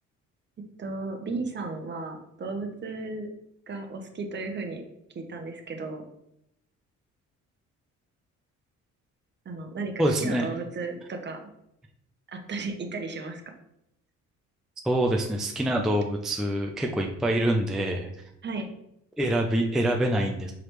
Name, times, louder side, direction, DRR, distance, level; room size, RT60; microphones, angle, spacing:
voice 1, 0.8-3.3 3.7-4.8 5.1-6.0 9.5-11.4 12.3-13.4 18.4-18.7, right 3 dB, 35° right, 4 dB, 0.8 m, -34 dB
voice 2, 10.0-10.5 14.9-18.1 19.2-20.5, right 1 dB, ahead, 1 dB, 0.4 m, -25 dB
4.9 x 3.1 x 3.0 m, 0.79 s
cardioid pair, 90°, 30 cm